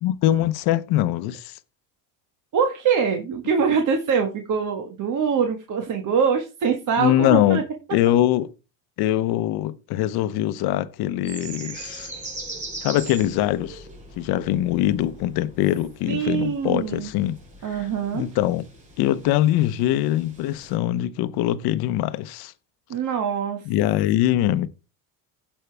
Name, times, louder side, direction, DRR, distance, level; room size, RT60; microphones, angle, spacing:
voice 1, 0.0-1.6 7.0-7.6 7.9-8.5 9.0-12.1 12.8-13.8 14.2-17.4 18.1-18.6 19.0-22.5 23.7-24.7, left 13 dB, 75° left, 0.9 m, -22 dB
voice 2, 2.5-7.6 16.1-17.1 17.6-18.3 22.9-23.7, right 6 dB, 55° right, 1.7 m, -23 dB
sound 1, 11.2-20.7, right 2 dB, 20° right, 5.7 m, -41 dB
16.5 x 5.6 x 3.4 m
cardioid pair, 100°, 38 cm